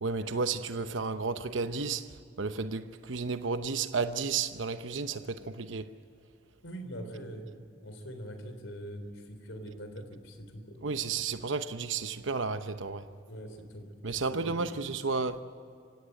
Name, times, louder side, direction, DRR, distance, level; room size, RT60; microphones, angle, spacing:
voice 1, 0.0-5.9 10.8-13.1 14.0-15.4, right 4 dB, 75° right, 0.9 m, -32 dB
voice 2, 6.6-7.4 7.8-10.8 13.3-13.9 14.3-14.5, equal, 90° left, 3.8 m, -43 dB
26.5 x 17.0 x 9.1 m
head